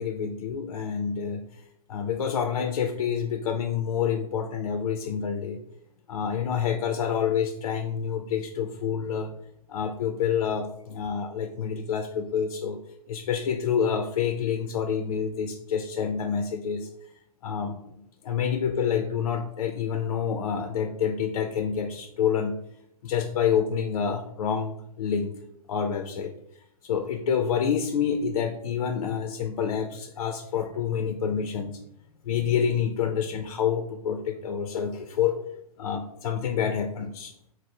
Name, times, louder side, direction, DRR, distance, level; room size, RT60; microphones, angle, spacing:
voice 1, 0.0-1.6 1.9-5.6 6.1-9.3 9.7-12.8 13.1-16.9 17.4-22.6 23.0-25.3 25.7-26.3 26.8-31.8 32.2-35.4 35.8-37.3, left 7 dB, 55° left, 5 dB, 0.4 m, -28 dB
4.6 x 2.0 x 4.3 m, 0.75 s
figure-of-eight pair, 115°, 20 cm